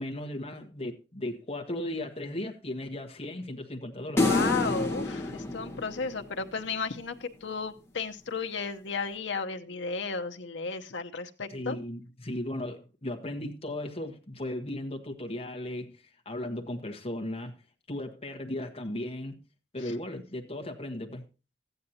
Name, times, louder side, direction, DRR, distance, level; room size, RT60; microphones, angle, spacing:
voice 1, 0.0-4.3 11.5-16.0 16.2-17.5 17.9-19.4 19.7-21.2, left 1 dB, 30° left, 1.3 m, -36 dB
voice 2, 4.2-11.8, left 4 dB, 70° left, 0.9 m, -34 dB
sound 1, 4.2-6.6, left 2 dB, 15° left, 1.3 m, -28 dB
14.0 x 9.3 x 2.8 m
head